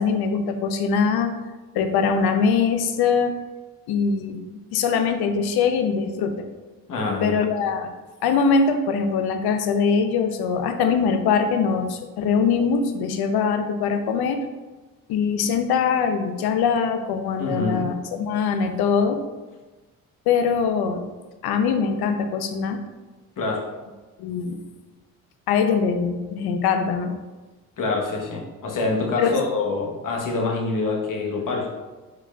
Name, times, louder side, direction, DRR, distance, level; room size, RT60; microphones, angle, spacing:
voice 1, 0.0-1.3 1.7-3.3 3.9-6.3 7.2-7.9 8.2-14.4 15.1-19.2 20.3-21.0 21.4-22.8 24.2-24.6 25.5-27.1 29.2-29.4, left 6 dB, 80° left, 7 dB, 0.6 m, -22 dB
voice 2, 6.9-7.4 17.4-17.8 23.4-23.7 27.8-31.7, left 3 dB, 55° left, 0 dB, 1.0 m, -26 dB
4.8 x 4.1 x 2.3 m, 1.2 s
supercardioid pair, 55°, 37 cm